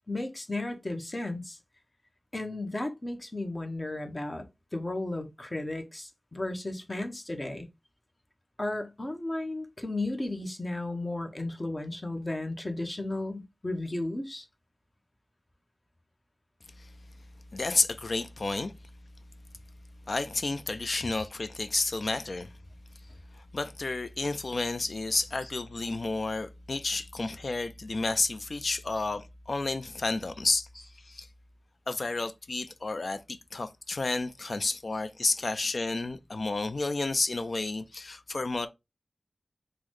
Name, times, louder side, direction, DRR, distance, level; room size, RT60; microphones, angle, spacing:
voice 1, 0.1-1.6 2.3-4.5 4.7-7.7 8.6-14.5 21.2-21.3, left 2 dB, 35° left, 0.7 m, -34 dB
voice 2, 17.5-18.7 20.1-22.5 23.5-30.7 31.0-31.3 31.9-38.7, left 3 dB, 65° left, 0.3 m, -31 dB
3.8 x 2.1 x 3.0 m
wide cardioid pair, 60°, 0 cm